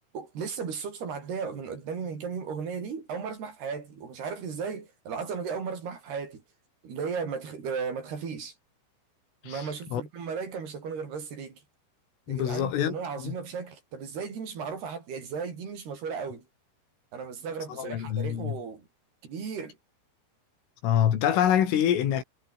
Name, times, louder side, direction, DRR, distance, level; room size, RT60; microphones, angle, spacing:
voice 1, 0.1-6.4 6.8-8.5 9.4-11.6 12.3-16.4 17.1-18.9 19.2-19.8, right 6 dB, 55° right, 6.6 m, -35 dB
voice 2, 12.3-13.4 17.7-18.6 20.8-22.2, left 10 dB, 85° left, 5.5 m, -26 dB
omnidirectional pair, 5.6 m